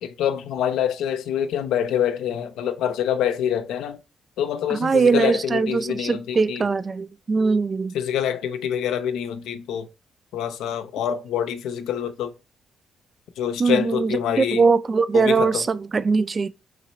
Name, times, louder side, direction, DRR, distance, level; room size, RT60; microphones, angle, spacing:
voice 1, 0.0-4.0 4.4-6.6 7.9-9.9 10.3-12.3 13.4-14.7 15.1-15.6, left 9 dB, 85° left, 0.5 m, -26 dB
voice 2, 4.7-8.0 13.6-16.5, right 4 dB, 35° right, 0.3 m, -21 dB
3.9 x 3.0 x 4.2 m
cardioid pair, 90°, 0 cm